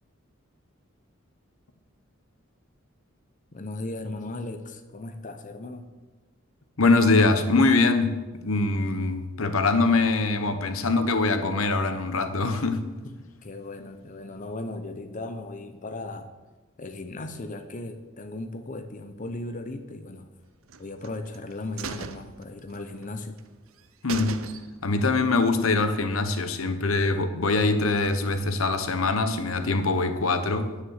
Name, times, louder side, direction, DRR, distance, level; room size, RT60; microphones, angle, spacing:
voice 1, 3.5-5.9 13.0-16.3 16.8-20.3 20.8-23.4, left 2 dB, 40° left, 8 dB, 0.7 m, -37 dB
voice 2, 6.8-12.8 24.0-24.4 24.8-30.7, left 3 dB, 90° left, 9 dB, 1.0 m, -23 dB
sound 1, 20.7-21.4 21.8-23.1 23.4-23.5 23.8-23.9 24.1-25.0 25.3-25.4, right 5 dB, 85° right, 0.7 m, -38 dB
9.7 x 9.5 x 6.5 m, 1.2 s
head